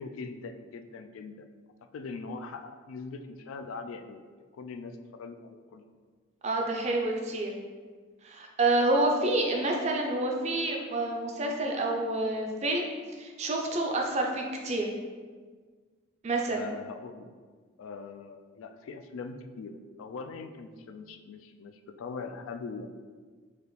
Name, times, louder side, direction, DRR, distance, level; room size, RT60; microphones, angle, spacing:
voice 1, 0.0-1.5 1.9-4.2 4.5-5.9 16.5-17.3 17.8-22.9, left 4 dB, 80° left, 7 dB, 0.3 m, -41 dB
voice 2, 6.4-7.5 8.2-12.9 13.2-14.9 16.2-16.7, right 2 dB, 35° right, 1 dB, 0.4 m, -28 dB
4.8 x 2.4 x 3.1 m, 1.5 s
head